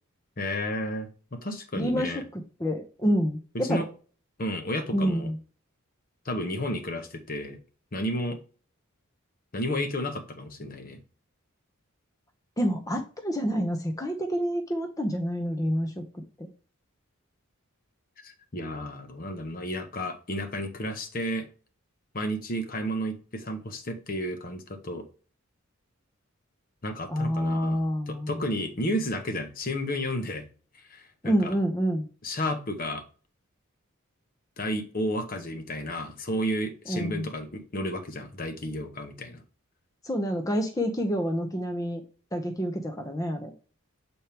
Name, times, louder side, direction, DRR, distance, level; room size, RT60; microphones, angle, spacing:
voice 1, 0.4-2.2 3.5-3.9 4.4-5.3 6.2-7.6 7.9-8.4 9.5-11.0 18.2-21.5 22.1-25.0 26.8-27.8 28.1-30.5 30.9-31.5 32.2-33.0 34.6-39.4, equal, 40° left, 7 dB, 1.0 m, -32 dB
voice 2, 1.7-3.8 4.9-5.4 12.6-16.0 16.4-16.5 27.1-28.4 31.2-32.1 36.9-37.3 40.0-42.0 42.3-43.5, equal, 15° left, 4 dB, 0.8 m, -28 dB
7.2 x 4.4 x 3.4 m, 0.38 s
head